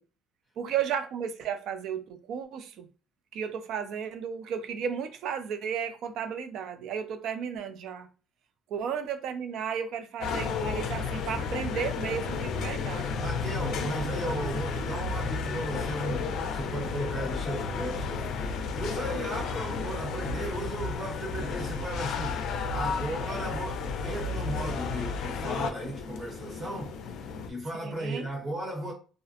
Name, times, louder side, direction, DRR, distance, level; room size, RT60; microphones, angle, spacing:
voice 1, 0.6-2.9 3.3-8.1 8.7-13.1 13.7-13.8 27.8-28.3, right 7 dB, 50° right, 0.3 m, -34 dB
sound 1, 10.2-27.5, left 5 dB, 55° left, 0.4 m, -32 dB
voice 2, 13.2-26.9 27.5-28.9, right 1 dB, 15° right, 0.9 m, -35 dB
2.4 x 2.0 x 2.7 m
cardioid pair, 175°, 0 cm